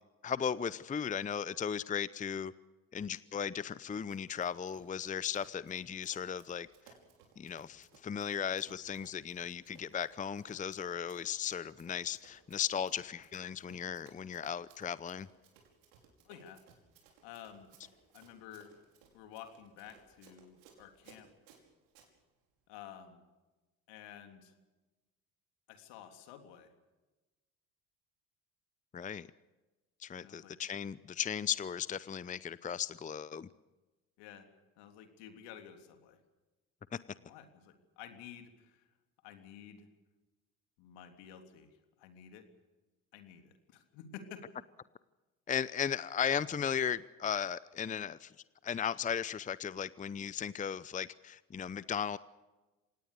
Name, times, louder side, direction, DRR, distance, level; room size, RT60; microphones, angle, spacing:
voice 1, 0.2-2.5 2.9-6.9 7.4-15.3 28.9-29.3 30.0-33.5 36.9-37.0 45.5-48.3 48.6-52.2, left 8 dB, 20° left, 18 dB, 0.7 m, -36 dB
Run, 4.1-22.1, right 6 dB, 70° right, 5.5 m, -63 dB
voice 2, 16.2-16.6 17.2-17.7 18.1-18.7 19.1-21.3 22.7-23.2 23.9-24.6 25.7-26.7 30.2-30.5 34.2-34.5 34.8-36.2 37.2-38.9 39.2-39.9 40.8-42.5 43.1-44.4, left 9 dB, 70° left, 6 dB, 3.4 m, -52 dB
26.5 x 18.5 x 6.8 m, 1.2 s
hypercardioid pair, 65°, 44 cm